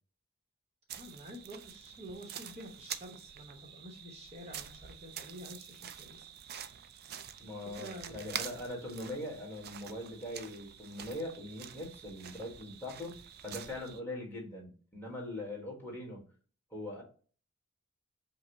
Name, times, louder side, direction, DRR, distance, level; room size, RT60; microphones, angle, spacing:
sound 1, 0.9-14.0, right 9 dB, 50° right, 0.4 m, -47 dB
voice 1, 1.0-6.3 7.7-8.4, equal, 30° right, 1 dB, 0.9 m, -49 dB
voice 2, 7.4-16.2 16.7-17.0, left 1 dB, 10° left, -3 dB, 1.4 m, -41 dB
5.3 x 2.1 x 3.9 m, 0.40 s
head